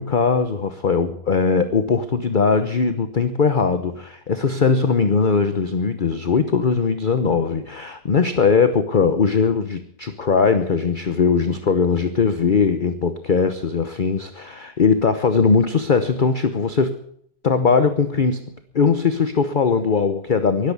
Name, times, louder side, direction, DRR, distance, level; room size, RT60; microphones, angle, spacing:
voice 1, 0.0-17.0 17.4-20.7, left 5 dB, 40° left, 10 dB, 0.8 m, -20 dB
12.0 x 12.0 x 9.5 m, 0.68 s
omnidirectional pair, 1.9 m